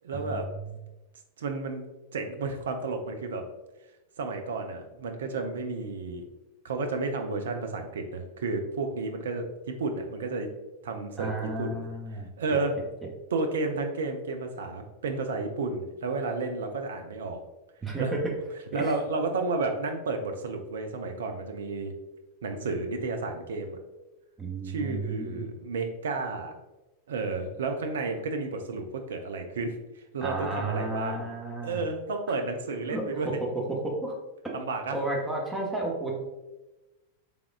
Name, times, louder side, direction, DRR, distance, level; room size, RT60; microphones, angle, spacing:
voice 1, 0.0-0.5 1.4-1.9 2.1-3.5 4.2-6.2 6.6-10.5 10.8-11.3 11.6-11.9 12.4-12.8 13.3-17.4 18.0-18.1 18.7-21.9 22.4-23.8 24.6-26.5 27.1-31.3 31.6-33.3 34.5-35.0, right 3 dB, 65° right, 5 dB, 0.5 m, -32 dB
voice 2, 11.2-12.6 17.8-18.3 18.7-18.9 24.4-25.5 30.2-31.8 32.9-33.4 33.7-34.1 34.9-36.2, right 2 dB, 10° right, -2 dB, 0.9 m, -32 dB
3.5 x 3.4 x 2.4 m, 1.1 s
figure-of-eight pair, 90°, 0 cm